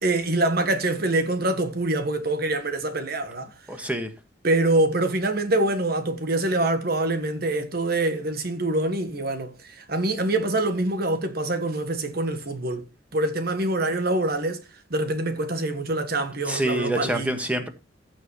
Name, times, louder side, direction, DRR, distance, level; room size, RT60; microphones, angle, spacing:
voice 1, 0.0-3.5 4.4-12.9 13.1-14.6 14.9-17.4, right 2 dB, 55° right, 1.5 m, -25 dB
voice 2, 3.7-4.1 16.5-17.7, right 1 dB, 10° right, 1.6 m, -26 dB
15.0 x 6.2 x 3.1 m
head